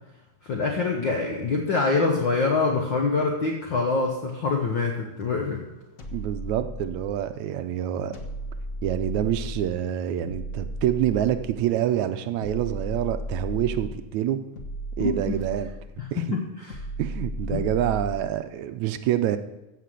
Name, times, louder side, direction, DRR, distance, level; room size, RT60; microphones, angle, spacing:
voice 1, 0.4-5.7 15.0-15.1 16.0-16.8 17.5-17.6, left 4 dB, 70° left, 0 dB, 1.1 m, -25 dB
sound 1, 6.0-7.3 8.1-9.8 10.3-11.7 12.4-14.0 14.6-16.0 16.7-18.3, equal, 90° left, 0.7 m, -35 dB
voice 2, 6.1-8.2 8.8-14.4 15.0-15.7 16.1-16.3 17.0-19.4, right 11 dB, 75° right, 10 dB, 1.8 m, -26 dB
15.0 x 5.8 x 7.7 m, 1.0 s
omnidirectional pair, 3.9 m